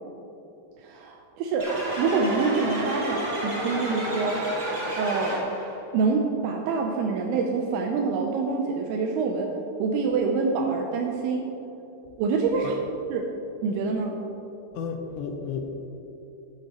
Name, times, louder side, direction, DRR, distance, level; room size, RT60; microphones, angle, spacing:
voice 1, 0.8-1.7 2.0-4.4 5.0-5.4 5.9-9.5 9.8-11.5 12.2-12.7 13.1-13.3 13.6-14.2, right 4 dB, 85° right, 1 dB, 2.2 m, -26 dB
sound 1, 1.6-5.7, right 1 dB, 65° right, 0.4 m, -30 dB
voice 2, 14.7-15.9, left 5 dB, 80° left, 4 dB, 3.0 m, -33 dB
16.5 x 7.8 x 3.0 m, 3.0 s
omnidirectional pair, 5.4 m